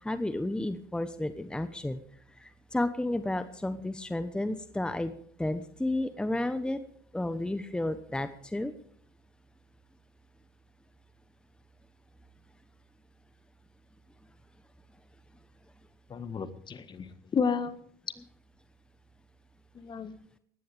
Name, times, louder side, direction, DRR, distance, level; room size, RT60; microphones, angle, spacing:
voice 1, 0.0-2.0 2.4-6.8 7.1-8.7, left 1 dB, 5° left, 11 dB, 1.0 m, -32 dB
voice 2, 16.1-17.8 19.7-20.1, left 6 dB, 35° left, 12 dB, 1.6 m, -32 dB
19.0 x 14.5 x 3.4 m, 0.62 s
supercardioid pair, 85°, 13 cm